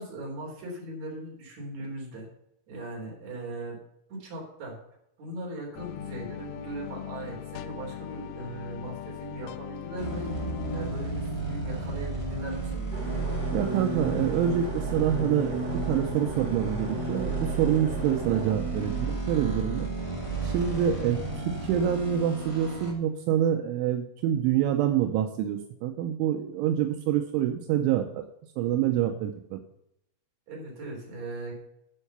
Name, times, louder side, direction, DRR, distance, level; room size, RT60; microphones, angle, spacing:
voice 1, 0.0-2.3 2.7-3.8 4.1-4.8 5.2-10.3 10.7-12.9 30.5-31.5, right 2 dB, 40° right, -2 dB, 4.4 m, -39 dB
sound 1, 5.8-10.9, left 10 dB, 90° left, 3.3 m, -40 dB
sound 2, 10.0-22.9, right 3 dB, 10° left, 1.4 m, -32 dB
sound 3, 12.9-18.5, equal, 10° right, 2.8 m, -38 dB
voice 2, 13.5-19.9 20.4-28.2 28.6-29.6, right 10 dB, 80° right, 5 dB, 3.2 m, -26 dB
12.0 x 5.6 x 6.8 m, 0.80 s
omnidirectional pair, 5.6 m